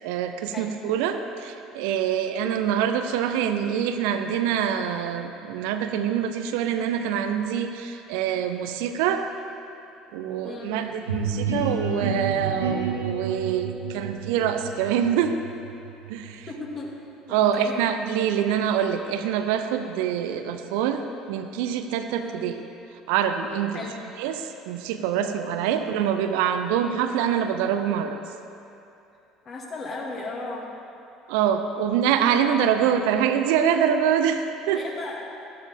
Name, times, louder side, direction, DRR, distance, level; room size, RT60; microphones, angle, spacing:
voice 1, 0.0-9.2 10.1-15.4 16.1-16.5 17.3-22.6 23.1-23.9 24.2-28.3 31.3-34.8, right 8 dB, 60° right, 8 dB, 0.6 m, -25 dB
sound 1, 11.1-16.7, right 4 dB, 80° right, 1.2 m, -30 dB
voice 2, 16.5-16.9 17.3-17.8 22.1-22.5 23.7-23.9 25.6-25.9 29.5-30.6 34.7-35.4, left 3 dB, 35° left, -2 dB, 2.2 m, -36 dB
13.5 x 12.0 x 3.6 m, 2.8 s
figure-of-eight pair, 60°, 0 cm